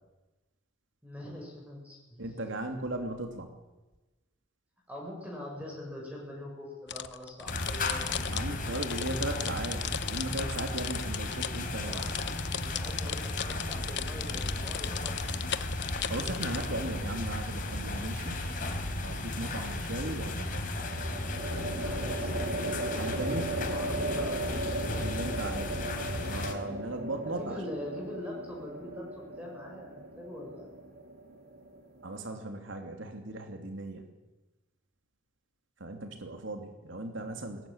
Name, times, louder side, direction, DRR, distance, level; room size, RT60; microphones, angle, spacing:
voice 1, 1.0-2.2 4.9-8.0 11.8-15.4 21.8-22.6 23.7-25.1 27.3-30.7, left 1 dB, 10° right, -1 dB, 7.1 m, -43 dB
voice 2, 2.2-3.5 8.2-12.0 16.1-18.4 19.0-20.6 22.9-23.5 24.9-25.7 26.3-27.6 32.0-34.0 35.8-37.7, right 1 dB, 80° right, 4 dB, 3.0 m, -37 dB
sound 1, 6.9-16.7, left 9 dB, 60° left, 1.0 m, -37 dB
sound 2, 7.5-26.5, left 2 dB, 45° left, 3.8 m, -35 dB
sound 3, 17.7-18.2 20.8-32.2, right 2 dB, 55° right, 3.6 m, -37 dB
22.5 x 20.5 x 9.0 m, 1.1 s
head